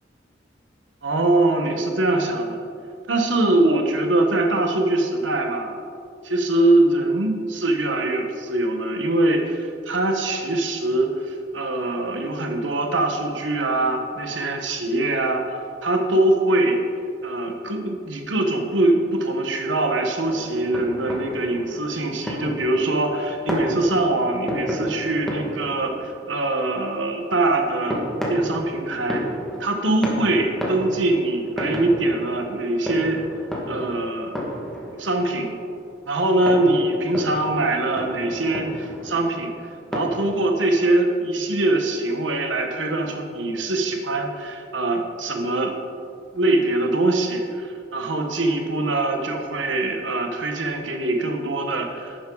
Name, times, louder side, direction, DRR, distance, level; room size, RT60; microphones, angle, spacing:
voice 1, 1.0-2.6 3.1-5.8 6.2-16.8 17.2-29.2 29.6-33.2 33.7-34.4 35.0-35.5 36.1-45.7 46.3-52.2, right 2 dB, 85° right, 3 dB, 1.3 m, -23 dB
sound 1, 20.2-40.0, equal, ahead, 1.7 m, -32 dB
11.5 x 9.6 x 4.0 m, 2.4 s
head